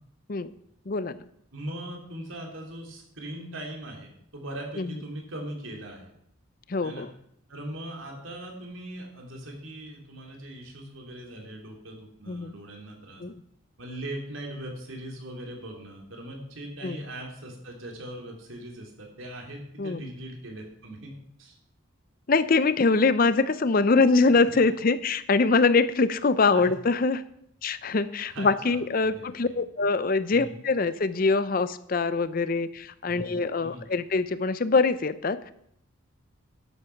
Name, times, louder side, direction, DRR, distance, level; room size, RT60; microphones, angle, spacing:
voice 1, 0.9-1.2 4.8-4.9 6.7-7.1 12.3-12.5 13.2-13.3 16.8-17.0 19.8-20.0 22.3-27.2 27.6-35.5, left 4 dB, 45° left, 14 dB, 0.5 m, -23 dB
voice 2, 1.5-6.1 6.8-7.1 7.5-13.2 13.8-21.1 21.4-21.5 24.3-24.5 26.5-26.7 28.3-29.5 30.3-30.6 33.1-33.9, right 1 dB, 75° right, 1 dB, 3.2 m, -40 dB
12.0 x 8.1 x 5.8 m, 0.73 s
head